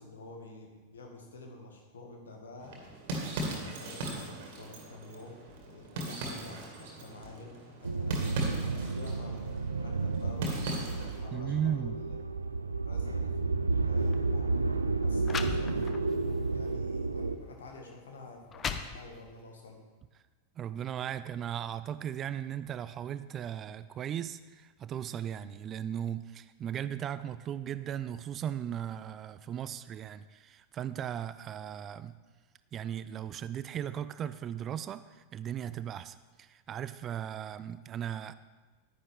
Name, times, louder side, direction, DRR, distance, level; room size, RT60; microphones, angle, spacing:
voice 1, 0.0-2.8 3.2-5.4 5.7-9.4 9.8-12.2 12.9-14.6 15.0-19.8, left 2 dB, 65° left, 2 dB, 1.9 m, -49 dB
sound 1, 2.6-11.3, right 2 dB, 50° right, 2.0 m, -39 dB
sound 2, 7.8-17.4, right 3 dB, 80° right, 0.5 m, -31 dB
voice 2, 11.3-12.0 20.6-32.2 32.7-38.3, right 9 dB, 30° right, 14 dB, 0.4 m, -37 dB
sound 3, 14.0-14.2 14.9-15.0 15.2-16.2 16.7-16.9 17.7-17.8 18.3-19.4, left 6 dB, 25° left, 0.6 m, -37 dB
10.5 x 10.0 x 3.6 m, 1.3 s
figure-of-eight pair, 90°, 0 cm